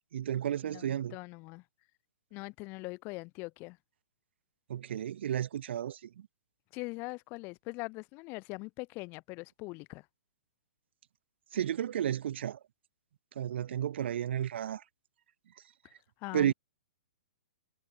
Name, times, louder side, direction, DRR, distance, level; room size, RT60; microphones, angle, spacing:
voice 1, 0.1-1.1 4.7-6.0 11.5-12.6 13.4-14.8 16.3-16.5, right 10 dB, 65° right, 0.5 m, -32 dB
voice 2, 0.6-1.6 2.3-3.8 6.7-10.1 16.2-16.5, left 25 dB, 35° left, 1.8 m, -42 dB
hypercardioid pair, 130°, 7 cm